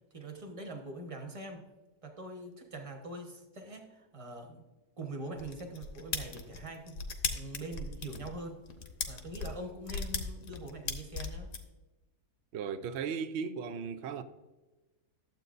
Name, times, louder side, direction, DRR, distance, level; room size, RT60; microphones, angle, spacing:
voice 1, 0.1-1.7 2.0-4.6 5.0-7.0 7.3-8.6 9.1-11.6, right 2 dB, 25° right, 1.1 m, -43 dB
sound 1, 5.4-11.6, left 5 dB, 55° left, 1.2 m, -37 dB
voice 2, 12.5-14.2, right 6 dB, 65° right, 0.6 m, -36 dB
12.0 x 7.8 x 2.6 m
omnidirectional pair, 1.7 m